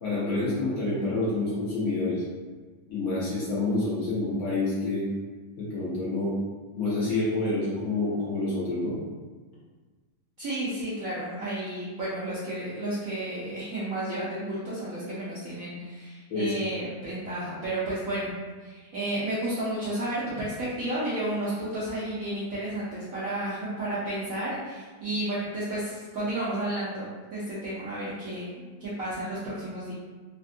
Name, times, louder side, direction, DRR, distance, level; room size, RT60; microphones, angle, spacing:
voice 1, 0.0-2.2 2.9-5.0 5.6-6.3 6.8-8.9 16.3-16.6, left 2 dB, 60° left, -8 dB, 1.0 m, -28 dB
voice 2, 10.4-18.3 18.6-28.5 28.8-29.9, right 1 dB, 65° right, -9 dB, 0.8 m, -32 dB
3.4 x 2.4 x 2.5 m, 1.3 s
omnidirectional pair, 2.1 m